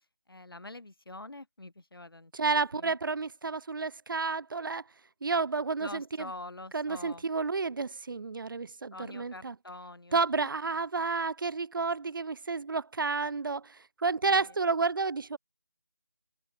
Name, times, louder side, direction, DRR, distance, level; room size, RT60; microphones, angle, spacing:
voice 1, 0.0-3.0 5.8-7.3 8.9-10.2 14.2-14.5, left 2 dB, 80° left, 2.0 m, -46 dB
voice 2, 2.3-4.8 5.2-6.3 6.7-9.5 10.1-15.4, right 4 dB, 65° right, 0.4 m, -31 dB
figure-of-eight pair, 165°, 12 cm